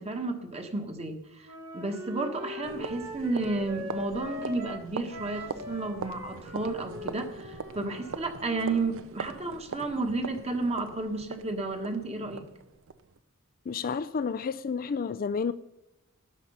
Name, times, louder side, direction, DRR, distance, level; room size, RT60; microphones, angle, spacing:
voice 1, 0.0-12.5, right 3 dB, 30° right, 1.5 m, -32 dB
Wind instrument woodwind instrument, 1.4-8.9, left 1 dB, 80° right, 3.3 m, -41 dB
sound 1, 2.6-13.2, right 5 dB, 65° right, 0.6 m, -42 dB
voice 2, 13.7-15.5, left 5 dB, 40° left, 0.4 m, -30 dB
12.5 x 10.0 x 5.6 m
head